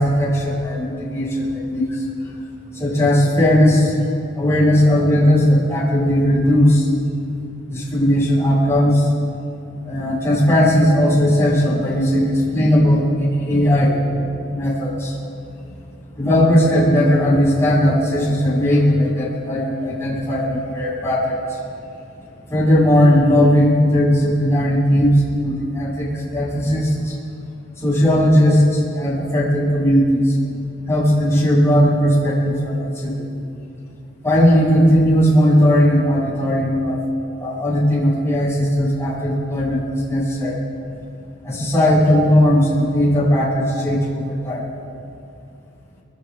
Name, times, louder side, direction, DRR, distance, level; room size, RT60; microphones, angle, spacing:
voice 1, 0.0-2.0 2.7-3.9 4.3-6.9 7.7-9.1 9.8-14.0 14.5-15.1 16.1-21.6 22.5-27.2 27.8-30.3 30.9-33.2 34.2-37.0 37.4-40.6 41.4-44.6, equal, 15° left, -8 dB, 6.4 m, -17 dB
29.5 x 25.0 x 3.6 m, 2.7 s
head